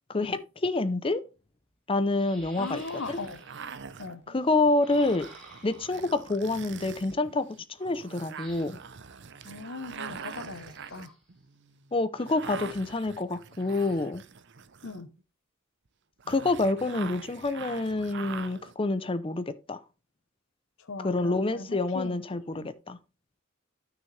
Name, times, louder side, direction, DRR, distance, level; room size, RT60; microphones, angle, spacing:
voice 1, 0.1-1.2 1.9-2.8 3.1-3.2 4.3-5.3 5.6-7.5 7.8-8.8 11.9-14.2 16.3-19.8 21.0-23.0, left 2 dB, 25° left, 0.6 m, -27 dB
sound 1, 1.4-1.5 2.1-3.7 4.8-6.2 8.4-8.9 9.9-11.3 13.5-14.0, equal, ahead, 3.5 m, -53 dB
sound 2, 2.5-15.2 16.2-18.7, right 6 dB, 55° right, 0.7 m, -44 dB
voice 2, 2.6-3.4 4.0-4.2 9.4-11.1 14.8-15.1 20.8-22.2 22.5-22.7, left 3 dB, 65° left, 1.0 m, -39 dB
11.0 x 6.4 x 3.3 m
head